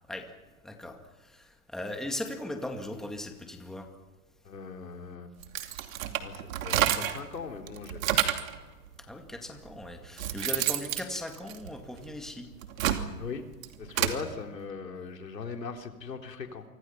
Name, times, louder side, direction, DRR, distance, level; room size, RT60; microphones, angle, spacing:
voice 1, 0.6-3.9 9.1-12.5, left 1 dB, ahead, 3 dB, 2.2 m, -38 dB
voice 2, 4.4-5.3 6.2-8.1 13.2-13.5 13.8-16.6, left 5 dB, 90° left, 3 dB, 3.7 m, -39 dB
sound 1, 5.4-7.3 7.7-8.6 9.4-9.5 9.9-12.1 12.5-14.2, right 11 dB, 55° right, 2.7 m, -29 dB
29.0 x 25.5 x 5.9 m, 1.2 s
hypercardioid pair, 140°, 48 cm